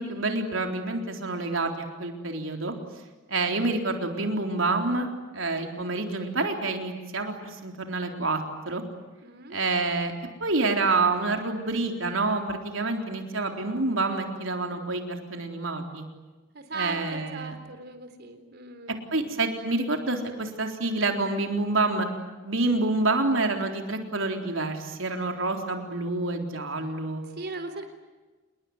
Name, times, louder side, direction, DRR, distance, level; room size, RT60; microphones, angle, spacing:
voice 1, 0.0-2.7 3.3-5.1 5.3-8.8 9.5-10.1 10.4-16.0 16.7-17.5 19.1-22.1 22.4-27.2, right 3 dB, 80° right, 4 dB, 4.0 m, -28 dB
voice 2, 9.2-9.6 16.5-19.0 27.4-27.8, right 3 dB, 55° right, 8 dB, 3.9 m, -38 dB
28.0 x 22.0 x 9.6 m, 1.2 s
head